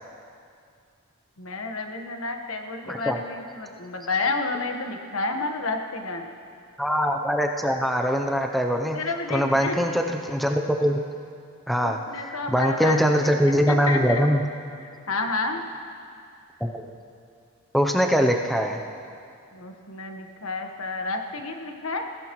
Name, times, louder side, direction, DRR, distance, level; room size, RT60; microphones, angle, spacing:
voice 1, 1.4-6.3 8.9-9.8 11.8-13.0 13.5-14.2 14.8-15.6 19.5-22.1, left 3 dB, 70° left, 4 dB, 1.3 m, -30 dB
voice 2, 6.8-9.0 9.3-11.0 11.7-12.0 12.5-14.4 16.6-16.9 17.7-18.8, equal, ahead, 2 dB, 0.5 m, -22 dB
21.0 x 15.5 x 3.1 m, 2.4 s
head